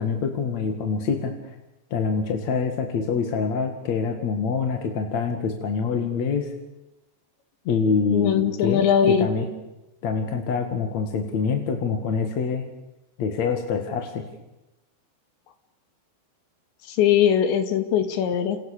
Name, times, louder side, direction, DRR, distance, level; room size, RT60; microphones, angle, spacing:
voice 1, 0.0-1.5 1.9-6.5 7.6-9.5 10.0-12.6 13.2-14.2, left 5 dB, 45° left, 5 dB, 2.6 m, -25 dB
voice 2, 8.1-9.3 16.9-18.6, left 9 dB, 70° left, 9 dB, 4.2 m, -20 dB
29.5 x 29.0 x 6.8 m, 0.95 s
omnidirectional pair, 5.5 m